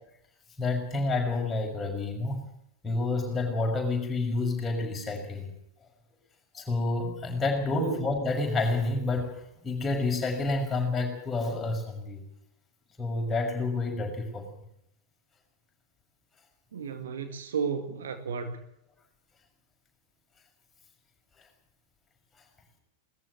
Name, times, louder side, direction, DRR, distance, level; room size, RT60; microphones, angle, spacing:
voice 1, 0.6-2.4 2.8-5.5 6.5-12.2 13.0-14.5, left 3 dB, 15° left, 6.2 m, -29 dB
voice 2, 16.7-18.6, right 6 dB, 65° right, 2.1 m, -33 dB
19.5 x 14.0 x 9.8 m
figure-of-eight pair, 90°, 0 cm